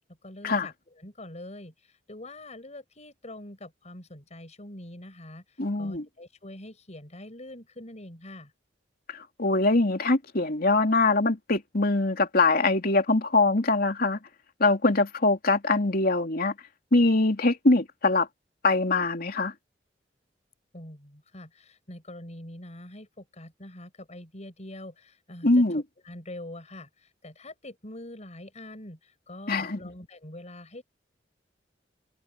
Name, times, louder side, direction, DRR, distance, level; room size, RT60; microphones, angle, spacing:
voice 1, 0.2-8.5 20.7-30.8, left 1 dB, 40° left, 6.5 m, -44 dB
voice 2, 5.6-6.0 9.1-14.2 14.6-16.5 16.9-18.3 18.6-19.5 25.4-25.8 29.5-29.8, left 2 dB, 55° left, 3.0 m, -23 dB
head